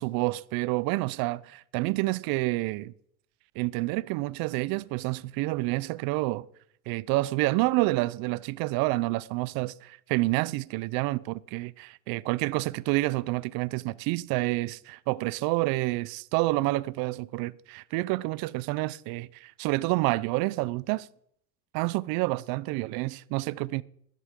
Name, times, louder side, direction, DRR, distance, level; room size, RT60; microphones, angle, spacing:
voice 1, 0.0-2.9 3.6-6.5 6.9-21.1 21.7-23.8, right 20 dB, 50° right, 0.6 m, -28 dB
13.5 x 11.0 x 3.7 m
supercardioid pair, 110°, 45 cm